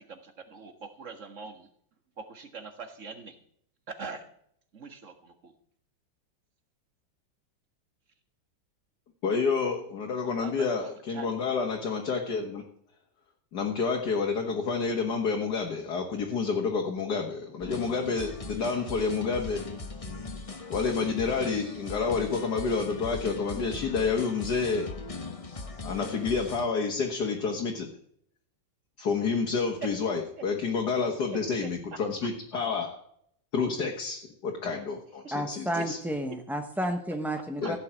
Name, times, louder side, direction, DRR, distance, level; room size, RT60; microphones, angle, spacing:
voice 1, 0.1-1.7 2.2-3.4 3.9-4.3 4.7-5.5 10.4-11.3 37.6-37.7, right 4 dB, 40° right, 7 dB, 1.9 m, -43 dB
voice 2, 9.2-12.6 13.5-19.7 20.7-25.0 25.8-27.9 29.0-33.0 33.5-36.0 37.6-37.8, left 5 dB, 60° left, 2 dB, 2.1 m, -29 dB
sound 1, 17.6-26.7, left 3 dB, 25° left, 0.8 m, -39 dB
voice 3, 35.3-37.8, right 1 dB, ahead, 5 dB, 0.6 m, -31 dB
15.5 x 6.8 x 8.9 m, 0.67 s
omnidirectional pair, 2.1 m